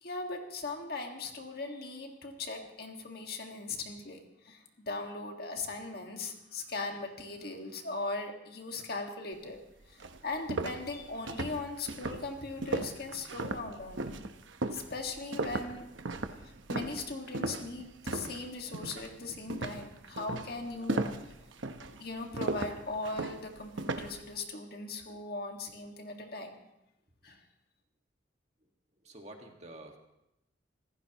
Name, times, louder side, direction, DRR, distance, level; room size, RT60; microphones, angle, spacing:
voice 1, 0.0-9.6 9.9-14.2 14.7-15.9 16.4-21.0 22.0-26.6 27.2-27.4, left 3 dB, 55° left, 3 dB, 1.9 m, -39 dB
sound 1, 9.5-9.6 10.0-18.4 18.7-19.1 19.5-24.2, right 2 dB, 90° right, 1.0 m, -36 dB
voice 2, 29.0-30.0, right 1 dB, 35° right, 2 dB, 1.8 m, -49 dB
26.5 x 15.0 x 3.0 m, 0.86 s
head